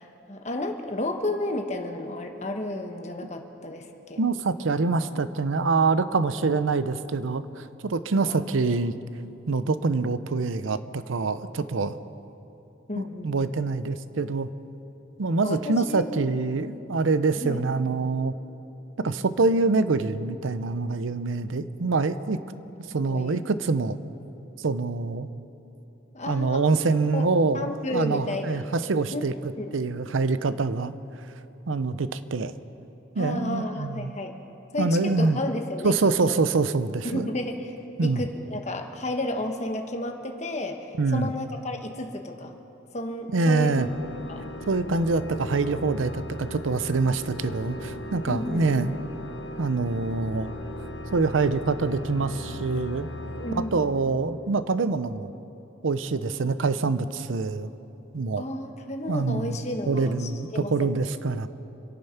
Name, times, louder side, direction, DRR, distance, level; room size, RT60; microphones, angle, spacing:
voice 1, 0.0-4.2 8.3-8.4 12.9-13.5 15.4-16.2 17.4-17.6 23.1-23.4 26.1-26.8 27.1-27.3 27.5-28.7 29.1-29.2 29.6-29.7 33.2-34.4 34.7-36.0 36.2-36.3 37.0-42.5 42.9-43.8 44.3-44.5 48.3-49.0 53.4-53.9 58.4-60.9, left 1 dB, 35° left, 4 dB, 1.2 m, -32 dB
voice 2, 4.2-8.9 9.5-10.8 11.1-12.0 13.2-14.5 15.2-18.3 19.0-22.4 22.9-24.0 24.6-25.3 26.3-29.3 29.7-30.9 31.7-32.5 33.2-34.1 34.8-35.4 35.8-37.3 38.0-38.2 41.0-41.3 43.3-43.9 44.7-48.9 49.6-50.5 51.1-53.1 53.5-55.3 55.8-57.7 58.1-58.4 59.1-59.6 59.9-61.5, right 3 dB, 90° right, 13 dB, 0.6 m, -25 dB
Organ, 43.6-54.5, left 1 dB, 65° left, 0.9 m, -38 dB
27.0 x 9.0 x 5.8 m, 3.0 s
head